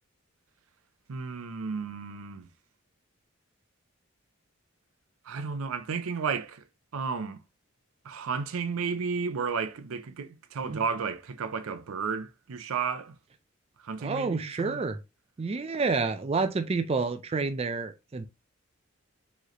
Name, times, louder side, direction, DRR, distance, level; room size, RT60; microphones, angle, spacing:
voice 1, 1.1-2.5 5.3-6.6 6.9-7.4 8.0-13.2 13.8-14.8, right 5 dB, 85° right, 0.5 m, -33 dB
voice 2, 14.0-15.0 15.4-18.3, right 4 dB, 30° right, 0.3 m, -29 dB
4.8 x 3.1 x 2.9 m
head